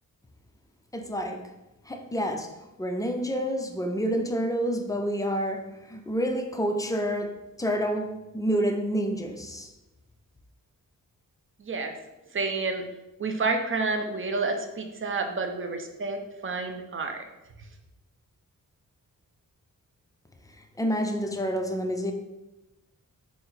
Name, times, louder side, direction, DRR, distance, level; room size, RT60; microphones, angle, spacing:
voice 1, 0.9-1.4 1.9-9.7 20.8-22.1, equal, 10° left, 0.4 m, -28 dB
voice 2, 11.6-11.9 12.3-12.9 13.2-17.2, right 3 dB, 40° right, 0.5 m, -29 dB
4.3 x 2.0 x 3.9 m
cardioid pair, 80°, 33 cm